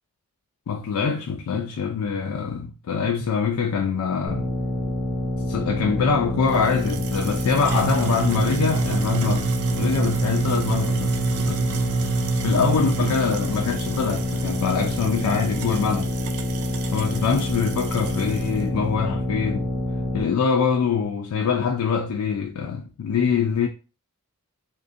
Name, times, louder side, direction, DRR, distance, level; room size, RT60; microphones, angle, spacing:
voice 1, 0.7-4.5 5.5-11.8 12.4-16.1 16.9-19.7 20.1-23.7, left 6 dB, 80° left, 0.3 m, -24 dB
sound 1, 4.3-20.2, left 1 dB, 10° left, 0.8 m, -27 dB
sound 2, 6.5-18.6, right 6 dB, 75° right, 0.3 m, -29 dB
2.5 x 2.1 x 2.4 m
head